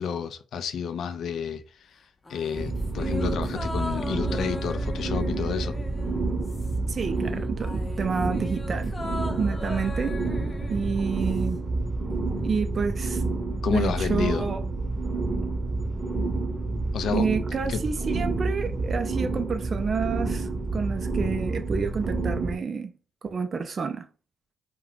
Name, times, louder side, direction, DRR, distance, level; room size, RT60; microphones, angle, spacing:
voice 1, 0.0-1.6 2.3-5.8 13.6-14.5 16.9-17.3 17.7-17.8, left 7 dB, 70° left, 0.4 m, -30 dB
sound 1, 2.2-7.0 7.3-11.6 11.9-12.0, left 2 dB, 30° left, 0.7 m, -39 dB
sound 2, 2.6-22.6, right 3 dB, 30° right, 0.8 m, -29 dB
voice 2, 6.9-9.0 9.4-10.2 10.7-11.6 12.4-13.2 13.7-14.6 17.1-22.9 23.2-24.1, right 5 dB, 50° right, 0.4 m, -29 dB
2.3 x 2.2 x 3.6 m
hypercardioid pair, 45°, 0 cm